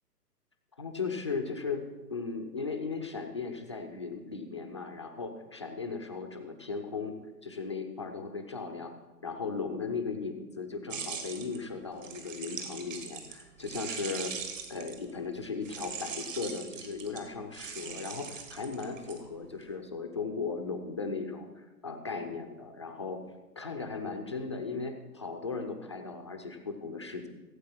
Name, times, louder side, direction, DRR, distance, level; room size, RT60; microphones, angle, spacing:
voice 1, 0.8-7.1 7.4-8.9 9.2-14.3 14.7-23.2 23.6-27.3, left 4 dB, 20° left, 4 dB, 0.5 m, -37 dB
sound 1, 10.9-15.2 15.6-19.6, right 6 dB, 50° right, 2.1 m, -41 dB
15.5 x 8.0 x 5.9 m, 1.1 s
figure-of-eight pair, 135°, 49 cm